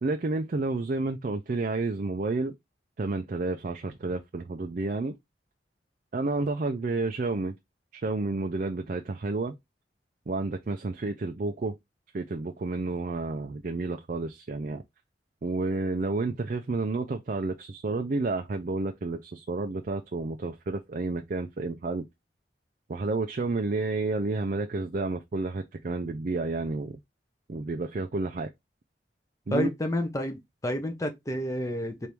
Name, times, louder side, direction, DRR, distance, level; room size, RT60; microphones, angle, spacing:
voice 1, 0.0-2.5 3.0-5.1 6.1-7.6 7.9-9.5 10.3-11.8 12.1-14.8 15.4-22.0 22.9-27.0 27.5-28.5 29.5-29.7, right 3 dB, 45° right, 0.4 m, -30 dB
voice 2, 29.5-32.1, left 1 dB, 20° left, 0.6 m, -30 dB
4.5 x 2.6 x 3.4 m
head